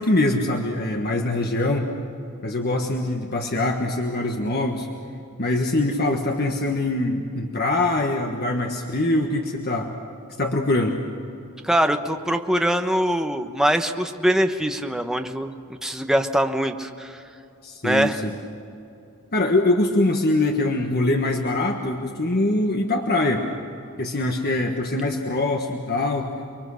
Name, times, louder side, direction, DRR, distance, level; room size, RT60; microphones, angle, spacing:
voice 1, 0.0-1.9 2.4-4.9 5.4-9.9 10.4-11.0 17.6-18.3 19.3-23.5 24.0-26.3, left 2 dB, 45° left, 2 dB, 1.5 m, -23 dB
voice 2, 11.6-15.5 15.8-17.2 17.8-18.2, equal, ahead, 5 dB, 1.1 m, -23 dB
29.5 x 22.5 x 6.5 m, 2.7 s
head